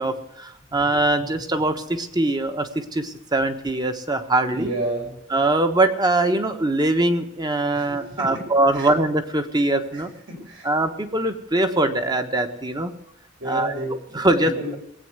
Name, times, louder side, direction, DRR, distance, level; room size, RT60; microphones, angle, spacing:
voice 1, 0.0-4.7 5.3-10.1 10.6-12.9 13.4-13.7 14.1-14.5, right 2 dB, 20° right, 7 dB, 1.3 m, -22 dB
voice 2, 4.5-5.2 7.7-8.5 8.7-8.9 9.9-10.7 13.4-14.8, right 1 dB, 70° right, 1 dB, 5.2 m, -31 dB
19.0 x 8.6 x 8.0 m, 0.80 s
head